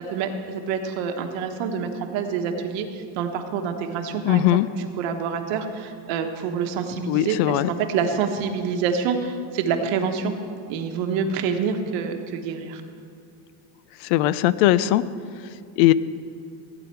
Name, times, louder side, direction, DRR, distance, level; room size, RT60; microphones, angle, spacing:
voice 1, 0.1-10.3 10.7-12.8, right 6 dB, 75° right, 5 dB, 1.3 m, -27 dB
voice 2, 4.2-4.7 7.1-7.7 14.0-15.0 15.8-15.9, left 15 dB, 80° left, 17 dB, 0.6 m, -19 dB
15.5 x 8.9 x 4.6 m, 2.4 s
cardioid pair, 160°, 46 cm